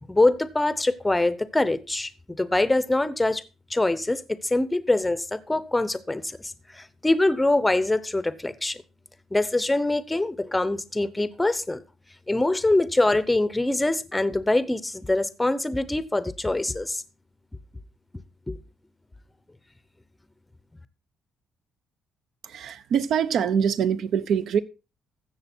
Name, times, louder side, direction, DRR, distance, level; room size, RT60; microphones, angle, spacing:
voice 1, 0.1-3.4 3.7-8.8 9.3-11.8 12.3-17.0 18.5-18.6, left 2 dB, 10° left, 0.7 m, -24 dB
voice 2, 22.4-24.6, right 7 dB, 60° right, 0.8 m, -24 dB
14.0 x 7.5 x 4.4 m
cardioid pair, 145°, 0 cm